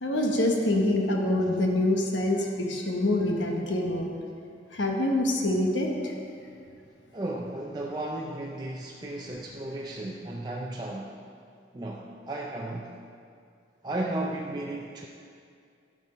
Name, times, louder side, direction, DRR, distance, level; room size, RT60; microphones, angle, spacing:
voice 1, 0.0-4.1 4.7-5.9, left 1 dB, 85° left, 1 dB, 1.2 m, -25 dB
voice 2, 7.1-11.1 11.7-12.9 13.8-15.1, right 1 dB, 20° right, -2 dB, 0.5 m, -34 dB
11.5 x 6.1 x 4.3 m, 2.4 s
head